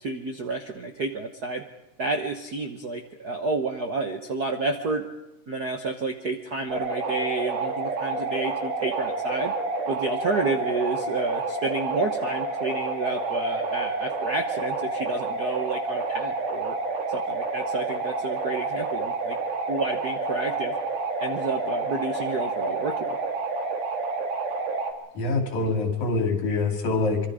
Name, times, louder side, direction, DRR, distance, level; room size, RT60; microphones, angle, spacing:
voice 1, 0.0-1.6 2.0-5.1 5.5-9.5 9.9-16.8 17.1-19.4 19.7-20.7 21.2-23.2, right 3 dB, 55° right, 5 dB, 1.1 m, -30 dB
sound 1, 6.7-24.9, right 3 dB, 90° right, 3.7 m, -29 dB
voice 2, 25.1-27.2, left 3 dB, 75° left, 4 dB, 4.3 m, -25 dB
25.5 x 24.0 x 5.0 m, 0.93 s
omnidirectional pair, 3.4 m